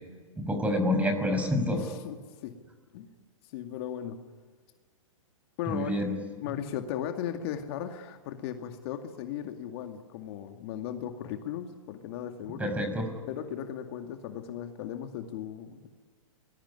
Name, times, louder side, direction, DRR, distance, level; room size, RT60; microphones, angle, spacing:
voice 1, 0.4-1.8 5.7-6.2 12.6-13.1, left 1 dB, 10° right, 6 dB, 5.9 m, -27 dB
voice 2, 1.7-2.6 2.9-3.1 3.5-4.2 5.6-5.9 6.4-12.7 13.3-15.9, left 10 dB, 50° left, 5 dB, 2.3 m, -37 dB
28.0 x 21.0 x 9.8 m, 1.5 s
hypercardioid pair, 130°, 17 cm